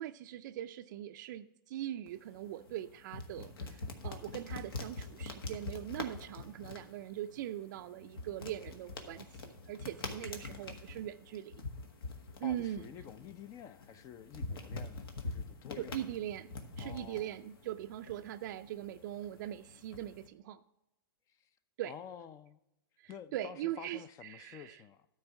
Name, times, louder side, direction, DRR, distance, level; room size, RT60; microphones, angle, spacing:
voice 1, 0.0-11.6 12.4-12.9 15.8-20.6 21.8-21.9 23.0-24.8, right 12 dB, 55° right, 8 dB, 0.4 m, -41 dB
sound 1, 2.1-20.3, left 3 dB, 75° left, 1.5 m, -45 dB
voice 2, 12.4-16.0 16.8-17.3 21.8-22.6 23.1-25.1, left 9 dB, 25° left, 15 dB, 0.5 m, -49 dB
13.0 x 4.4 x 5.9 m, 0.87 s
hypercardioid pair, 125°, 12 cm